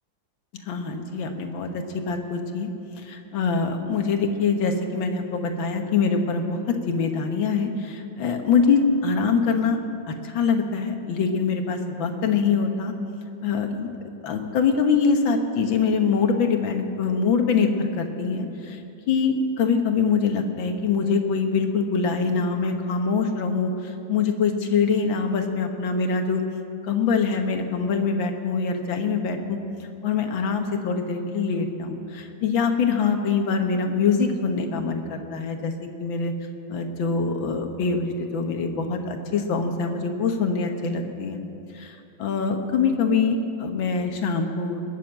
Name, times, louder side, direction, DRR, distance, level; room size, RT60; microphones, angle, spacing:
voice 1, 0.5-2.7 3.0-9.8 10.2-12.9 13.4-13.9 14.2-18.8 19.1-26.4 26.8-29.6 30.0-35.7 36.0-36.3 36.7-41.4 41.8-44.8, left 5 dB, 80° left, 5 dB, 2.0 m, -24 dB
21.0 x 7.1 x 8.9 m, 2.7 s
omnidirectional pair, 2.1 m